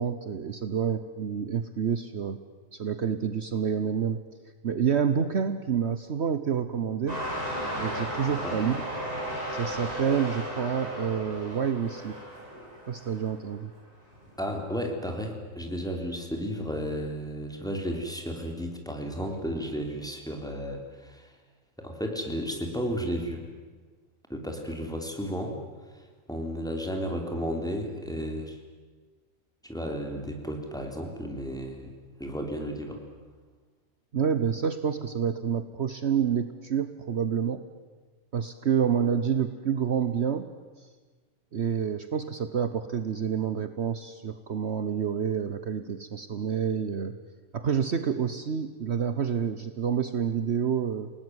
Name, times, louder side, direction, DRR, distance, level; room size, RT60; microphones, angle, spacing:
voice 1, 0.0-2.4 2.7-4.2 4.6-7.2 7.8-8.8 9.5-12.2 12.9-13.7 34.1-37.6 38.3-40.5 41.5-47.2 47.5-51.1, right 7 dB, 55° right, 10 dB, 1.3 m, -28 dB
sound 1, 7.1-13.5 14.2-14.3, equal, 30° right, 7.3 m, -35 dB
voice 2, 14.4-21.3 21.8-23.4 24.3-25.6 26.3-28.6 29.6-31.9 32.2-33.0, equal, 5° left, 2 dB, 3.7 m, -33 dB
29.0 x 18.5 x 9.6 m, 1.4 s
omnidirectional pair, 1.4 m